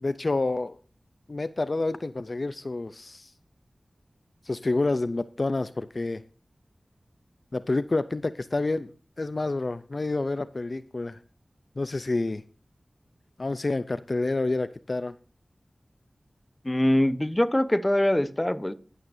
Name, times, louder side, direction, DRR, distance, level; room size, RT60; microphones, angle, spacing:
voice 1, 0.0-0.8 1.3-3.3 4.4-6.2 7.5-8.9 9.2-11.2 11.8-12.4 13.4-15.2, left 2 dB, 55° left, 13 dB, 0.5 m, -28 dB
voice 2, 16.6-18.7, left 1 dB, 20° left, 13 dB, 1.0 m, -23 dB
12.5 x 11.5 x 2.7 m, 0.40 s
cardioid pair, 40°, 0 cm